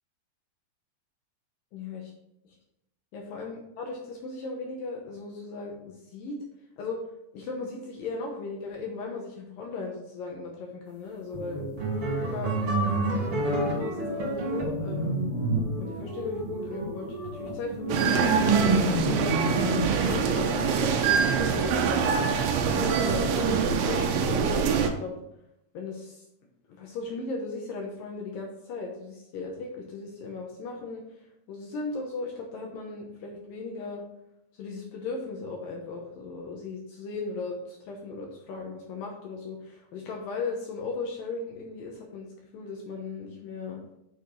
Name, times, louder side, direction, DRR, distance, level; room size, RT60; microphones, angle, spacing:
voice 1, 1.7-2.1 3.1-6.4 6.8-7.0 7.3-11.7 12.3-12.8 13.1-15.3 15.8-18.1 18.7-19.3 19.7-22.3 22.7-25.1 25.7-26.2 26.7-31.0 31.5-34.0 34.5-42.3 42.5-43.8, left 3 dB, 80° left, 0 dB, 2.0 m, -37 dB
sound 1, 11.3-20.6, right 2 dB, 50° right, 1.7 m, -28 dB
sound 2, 17.9-24.9, right 6 dB, 75° right, 3.0 m, -25 dB
7.1 x 6.7 x 3.9 m, 0.81 s
omnidirectional pair, 5.5 m